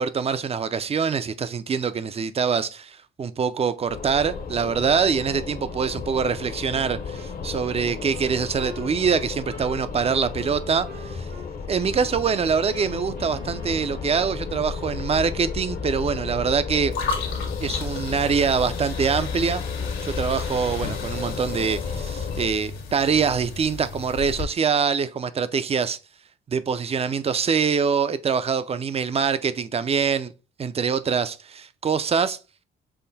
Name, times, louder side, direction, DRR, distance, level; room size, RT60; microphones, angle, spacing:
voice 1, 0.0-11.3 11.7-16.9 17.6-19.6 20.0-26.0 26.5-30.3 30.6-32.4, right 6 dB, 30° right, 0.5 m, -24 dB
sound 1, 3.9-22.5, left 5 dB, 50° left, 0.8 m, -33 dB
Wind instrument woodwind instrument, 6.7-11.5 11.8-14.4, right 1 dB, 65° right, 2.3 m, -46 dB
sound 2, 16.9-24.4, left 4 dB, 85° left, 1.5 m, -34 dB
5.7 x 2.1 x 4.1 m
cardioid pair, 90°, 20 cm